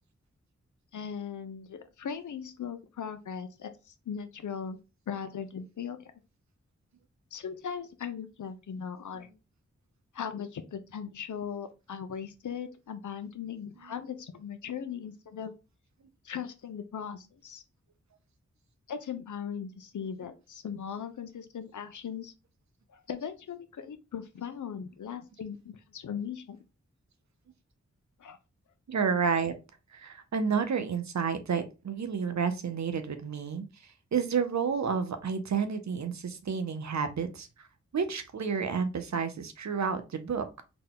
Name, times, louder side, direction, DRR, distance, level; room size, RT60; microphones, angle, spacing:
voice 1, 0.9-4.8 5.1-6.1 7.3-9.3 10.1-15.5 16.2-17.6 18.9-22.3 22.9-26.6 28.2-28.4, left 7 dB, 80° left, 9 dB, 0.6 m, -38 dB
voice 2, 28.9-29.5 29.9-33.6 34.1-37.5 37.9-40.6, right 6 dB, 70° right, 9 dB, 0.7 m, -30 dB
4.0 x 2.2 x 3.7 m, 0.29 s
cardioid pair, 40°, 29 cm